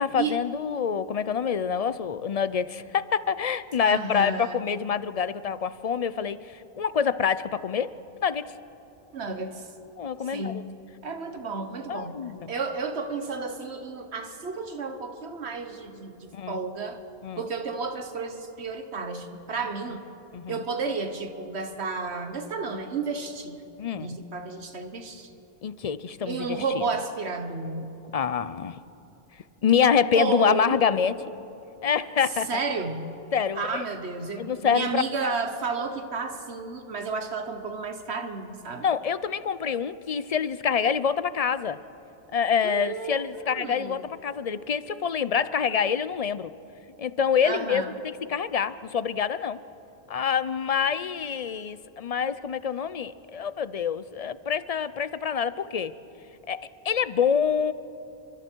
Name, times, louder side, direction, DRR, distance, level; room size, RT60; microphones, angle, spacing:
voice 1, 0.0-7.9 8.2-8.5 10.0-10.6 11.9-12.5 16.3-16.6 17.2-17.4 20.3-20.6 23.8-24.1 25.6-26.9 28.1-28.8 29.6-31.1 31.8-32.5 33.3-33.8 34.4-35.3 38.8-41.8 42.3-46.5 47.0-49.6 50.1-55.9 56.5-57.7, left 7 dB, 45° left, 15 dB, 0.5 m, -26 dB
voice 2, 3.8-4.6 9.1-9.7 10.3-10.7 11.0-12.2 12.5-17.0 17.4-20.0 20.5-23.6 23.9-25.3 26.2-28.0 30.2-30.8 32.5-33.2 33.5-38.9 42.6-44.1 47.4-47.9, right 4 dB, 80° right, 7 dB, 1.5 m, -32 dB
29.5 x 24.5 x 4.6 m, 3.0 s
omnidirectional pair, 1.1 m